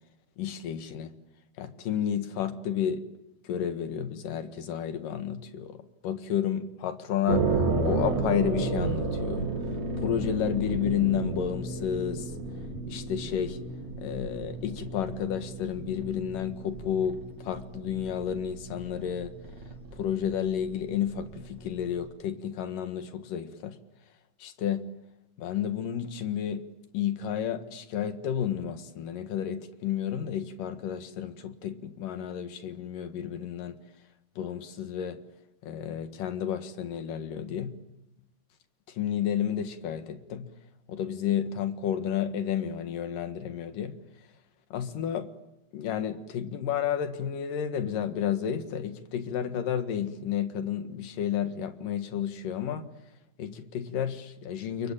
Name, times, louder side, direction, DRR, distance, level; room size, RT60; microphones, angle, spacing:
voice 1, 0.4-1.1 1.6-3.0 3.4-9.5 10.0-12.3 12.9-13.6 14.0-19.3 19.9-23.8 24.4-24.9 25.4-26.7 26.9-33.8 34.4-35.2 35.6-37.8 38.9-40.5 40.9-43.9 44.7-45.3 45.7-52.9 53.4-54.9, left 9 dB, 85° left, 3.3 m, -31 dB
sound 1, 7.3-22.1, right 3 dB, 55° right, 4.2 m, -33 dB
29.5 x 23.0 x 8.9 m
omnidirectional pair, 3.7 m